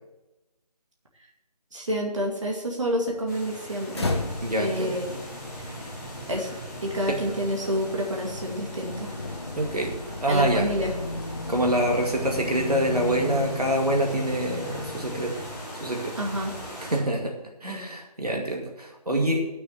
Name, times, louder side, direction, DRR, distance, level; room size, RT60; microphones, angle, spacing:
voice 1, 1.7-4.1 4.6-5.1 5.6-5.8 6.3-6.5 6.8-9.2 10.3-10.9 16.2-16.5, equal, 50° right, -1 dB, 2.3 m, -28 dB
sound 1, 3.3-17.0, right 1 dB, 10° left, 4.1 m, -40 dB
sound 2, 3.9-15.9, left 2 dB, 40° left, 1.3 m, -35 dB
voice 2, 4.4-5.0 5.8-5.9 7.1-7.2 9.6-9.9 10.2-10.7 11.5-15.4 15.8-16.2 16.8-19.5, right 1 dB, 70° right, 1 dB, 2.3 m, -26 dB
11.5 x 6.6 x 7.2 m, 1.0 s
figure-of-eight pair, 160°, 20 cm